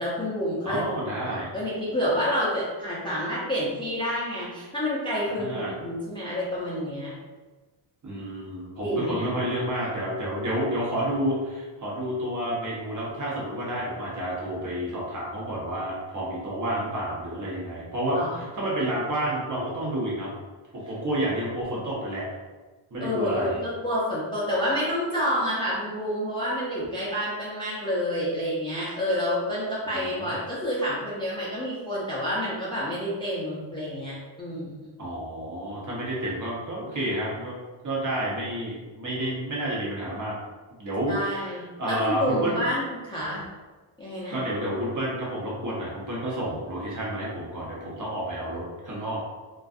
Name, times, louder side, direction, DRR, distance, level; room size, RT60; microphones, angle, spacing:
voice 1, 0.0-0.8 1.2-7.1 8.8-9.3 18.1-18.4 23.0-34.9 41.1-43.4 44.0-44.4, equal, 10° left, -9 dB, 0.5 m, -29 dB
voice 2, 0.6-1.5 5.3-5.7 8.0-20.3 20.7-22.3 22.9-23.6 29.9-30.3 35.0-37.6 37.8-40.4 40.8-42.6 44.3-49.3, right 1 dB, 40° right, -5 dB, 0.8 m, -30 dB
2.5 x 2.3 x 2.4 m, 1.3 s
cardioid pair, 120°, 50 cm